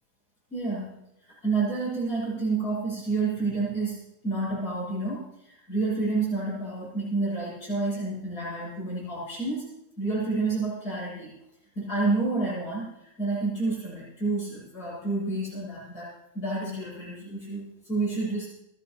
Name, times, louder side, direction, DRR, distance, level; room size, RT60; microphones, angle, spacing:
voice 1, 0.5-0.9 1.2-9.6 10.0-11.3 11.7-16.1 16.3-18.5, right 3 dB, 60° left, -8 dB, 7.9 m, -29 dB
27.0 x 11.0 x 3.1 m, 0.85 s
omnidirectional pair, 1.9 m